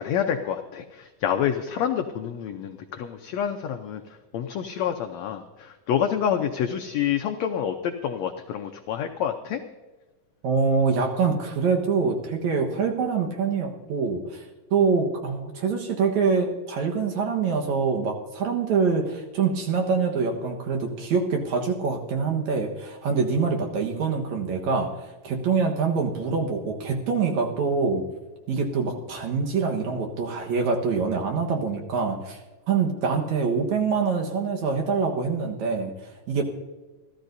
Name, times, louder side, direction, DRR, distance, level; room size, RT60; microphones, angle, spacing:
voice 1, 0.0-4.0 4.3-9.6, left 9 dB, 85° left, 5 dB, 1.5 m, -28 dB
voice 2, 10.4-14.4 14.7-28.0 28.5-32.4 32.7-36.4, right 5 dB, 60° right, 2 dB, 2.4 m, -25 dB
28.5 x 13.0 x 2.7 m, 1.2 s
omnidirectional pair, 4.0 m